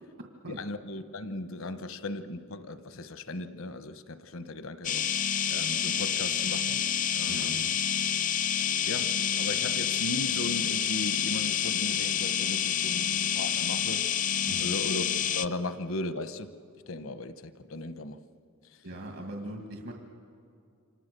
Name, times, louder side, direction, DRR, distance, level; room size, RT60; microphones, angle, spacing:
voice 1, 0.6-5.1 5.5-6.8 7.1-7.7 8.9-14.1 14.6-15.0 15.3-16.5 16.9-18.2, left 2 dB, 70° left, 11 dB, 1.0 m, -37 dB
sound 1, 4.8-15.5, left 9 dB, 40° left, 0.5 m, -28 dB
voice 2, 7.3-7.6 14.5-14.8 18.8-19.9, right 1 dB, 75° right, 3 dB, 2.1 m, -40 dB
28.5 x 25.5 x 6.8 m, 2.3 s
head